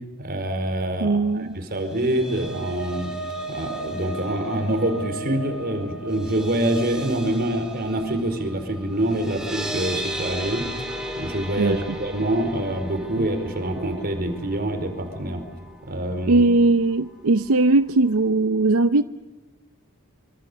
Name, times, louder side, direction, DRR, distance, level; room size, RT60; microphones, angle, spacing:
voice 1, 0.2-3.1 3.5-10.7 11.2-15.4 15.8-16.4, right 1 dB, 45° right, 7 dB, 4.6 m, -26 dB
voice 2, 1.0-1.6 11.6-12.0 13.2-13.3 16.3-19.0, right 2 dB, 85° right, 11 dB, 0.7 m, -19 dB
sound 1, 1.7-16.0 16.3-16.5 16.8-17.0, right 1 dB, 5° right, 3.7 m, -35 dB
25.5 x 25.0 x 6.9 m, 1.2 s
head